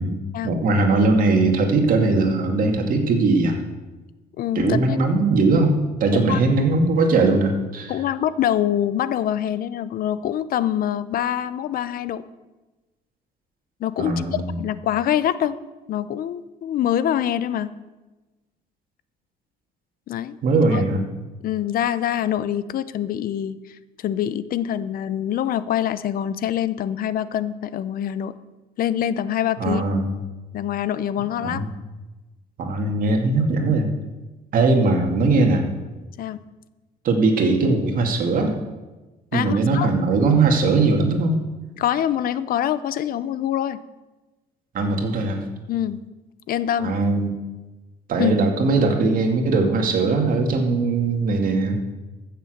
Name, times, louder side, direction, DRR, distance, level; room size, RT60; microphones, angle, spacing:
voice 1, 0.4-3.6 4.6-8.0 14.0-14.6 20.4-21.0 29.6-30.2 31.4-31.7 32.6-33.9 34.5-35.6 37.0-38.6 39.3-41.4 44.7-45.4 46.8-47.3 48.1-51.7, right 3 dB, 55° right, 3 dB, 2.2 m, -20 dB
voice 2, 4.4-5.0 6.1-6.4 7.9-12.2 13.8-14.1 14.6-15.6 15.9-17.7 20.1-20.4 20.7-20.8 21.4-28.3 28.8-29.8 30.5-31.7 36.2-36.4 39.3-39.9 41.8-43.8 45.7-46.0 46.5-47.0 48.2-48.3, left 10 dB, 60° left, 15 dB, 0.6 m, -25 dB
14.5 x 6.9 x 6.5 m, 1.1 s
cardioid pair, 110°, 17 cm